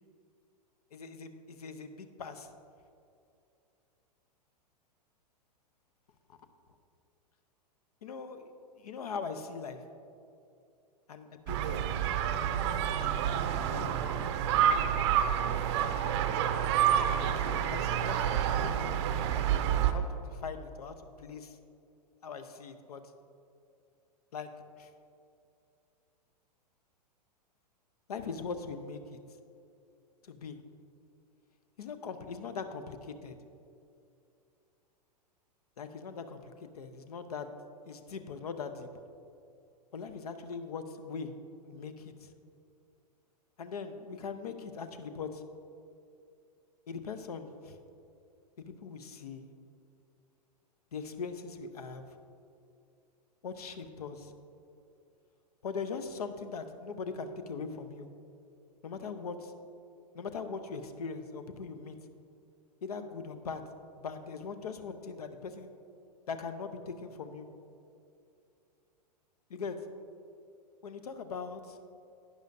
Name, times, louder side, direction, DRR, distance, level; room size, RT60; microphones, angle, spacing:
voice 1, 0.9-2.5 6.3-6.4 8.0-8.5 8.8-9.8 11.1-11.8 13.7-14.1 17.2-19.0 19.9-21.6 22.2-23.0 24.3-24.5 24.8-24.9 28.1-29.2 30.2-30.6 31.8-33.4 35.8-37.5 37.8-38.9 39.9-41.3 41.6-42.3 43.6-45.4 46.9-47.8 48.6-49.5 50.9-52.2 53.4-54.3 55.6-58.1 58.8-59.5 60.1-62.0 62.8-63.6 64.0-65.7 66.3-67.5 69.5-69.8 70.8-71.8, left 5 dB, 65° left, 9 dB, 0.7 m, -41 dB
sound 1, 11.5-19.9, right 9 dB, 40° right, 0.6 m, -28 dB
11.5 x 9.5 x 2.6 m, 2.5 s
figure-of-eight pair, 100°, 21 cm